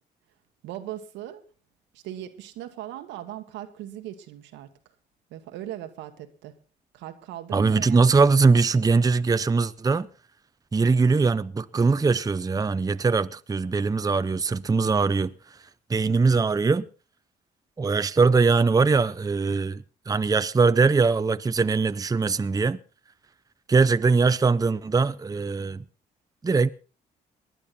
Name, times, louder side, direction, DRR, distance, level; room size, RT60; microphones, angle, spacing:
voice 1, 0.6-1.4 1.9-4.7 5.3-6.5 6.9-8.2, right 12 dB, 90° right, 1.4 m, -39 dB
voice 2, 7.5-10.1 10.7-15.3 15.9-16.9 17.8-22.8 23.7-25.8 26.4-26.7, right 4 dB, 20° right, 0.6 m, -21 dB
19.5 x 10.5 x 4.1 m
supercardioid pair, 65°, 18 cm